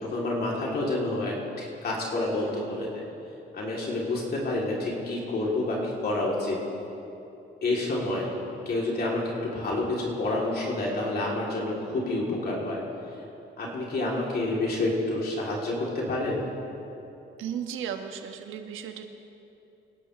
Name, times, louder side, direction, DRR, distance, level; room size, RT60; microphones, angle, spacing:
voice 1, 0.0-3.0 3.5-6.6 7.6-8.2 8.6-12.8 13.6-16.4, left 2 dB, 50° left, -4 dB, 3.3 m, -28 dB
voice 2, 17.4-19.0, right 8 dB, 85° right, 6 dB, 1.2 m, -35 dB
26.5 x 11.5 x 3.3 m, 2.9 s
cardioid pair, 90°, 20 cm